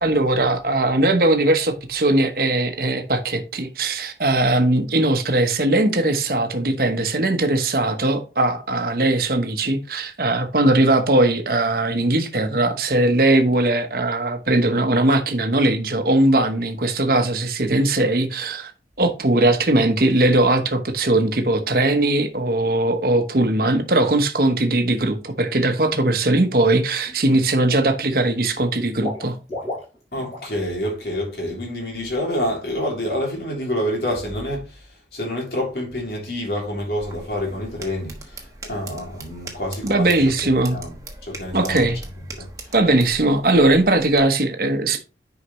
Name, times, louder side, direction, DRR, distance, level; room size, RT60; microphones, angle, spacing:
voice 1, 0.0-18.7 19.0-29.4 39.8-40.8 41.5-42.0 42.7-45.0, right 2 dB, 55° right, 1.0 m, -19 dB
Water / Liquid, 26.4-26.7 27.0-27.7 28.0-30.6 30.8-31.0 31.4-31.5, left 1 dB, 40° left, 4.8 m, -35 dB
voice 2, 30.1-34.8 35.1-40.3 40.7-40.9 41.2-41.9 42.4-42.5, left 1 dB, 60° left, 3.3 m, -27 dB
sound 1, 37.0-44.2, right 2 dB, 20° right, 1.2 m, -40 dB
9.9 x 5.0 x 3.1 m
head